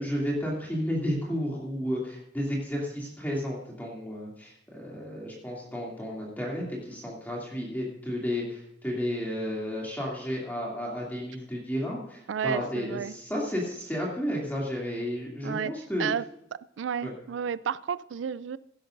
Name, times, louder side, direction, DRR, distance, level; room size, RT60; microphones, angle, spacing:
voice 1, 0.0-16.1 17.0-17.1, equal, 10° left, -4 dB, 2.6 m, -32 dB
voice 2, 12.3-13.1 15.4-15.7 16.0-16.2 16.8-18.6, right 7 dB, 85° right, 17 dB, 0.4 m, -31 dB
16.5 x 11.5 x 2.6 m, 0.80 s
head